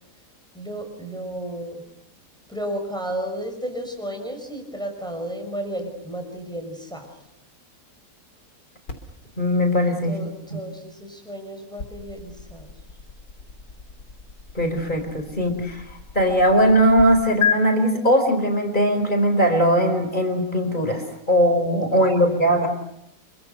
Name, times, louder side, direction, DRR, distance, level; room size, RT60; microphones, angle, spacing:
voice 1, 0.5-1.8 2.5-7.1 10.1-12.7 21.9-22.4, right 1 dB, ahead, 3 dB, 5.7 m, -33 dB
sound 1, 8.9-17.0 17.4-17.6, left 7 dB, 90° left, 4.0 m, -33 dB
voice 2, 9.4-10.2 10.5-10.6 14.5-15.8 16.1-22.7, equal, 25° left, 5 dB, 4.8 m, -20 dB
28.5 x 25.0 x 6.8 m, 0.80 s
omnidirectional pair, 1.8 m